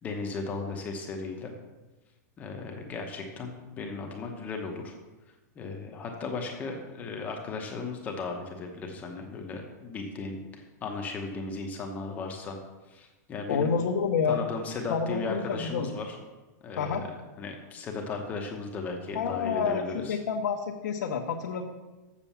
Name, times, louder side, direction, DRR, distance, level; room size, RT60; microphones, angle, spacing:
voice 1, 0.0-1.5 2.4-4.9 5.6-12.6 12.9-13.7 14.3-16.2 16.6-20.2, left 3 dB, 15° left, 2 dB, 0.9 m, -36 dB
voice 2, 13.5-14.4 14.9-15.9 16.8-17.0 19.1-19.8 20.1-21.6, left 6 dB, 80° left, 0 dB, 1.0 m, -28 dB
7.3 x 6.8 x 7.0 m, 1.1 s
supercardioid pair, 175°, 9 cm